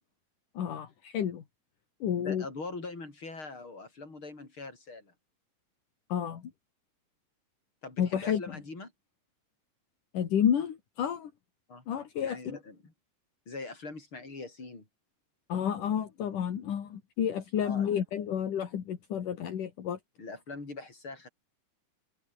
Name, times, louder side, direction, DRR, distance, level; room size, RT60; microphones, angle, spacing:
voice 1, 0.6-1.4 2.0-2.5 6.1-6.5 8.0-8.6 10.1-11.3 11.9-12.6 15.5-20.0, left 9 dB, 70° left, 3.8 m, -30 dB
voice 2, 2.2-5.1 7.8-8.9 11.7-11.8 12.2-12.9 13.5-14.9 17.6-17.9 20.2-21.3, left 3 dB, 35° left, 7.3 m, -42 dB
omnidirectional pair, 3.9 m